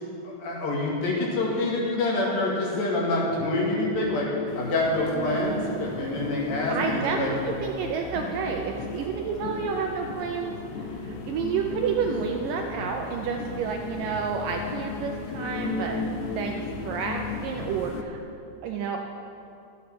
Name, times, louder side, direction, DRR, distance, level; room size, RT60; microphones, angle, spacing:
voice 1, 0.4-4.3 4.6-7.3, left 2 dB, 65° left, -5 dB, 3.7 m, -26 dB
sound 1, 4.5-18.0, left 3 dB, 85° left, 1.7 m, -35 dB
voice 2, 6.7-16.0 16.4-18.2 18.6-19.0, right 6 dB, 80° right, 2 dB, 1.9 m, -30 dB
12.5 x 8.4 x 5.9 m, 2.7 s
omnidirectional pair, 4.5 m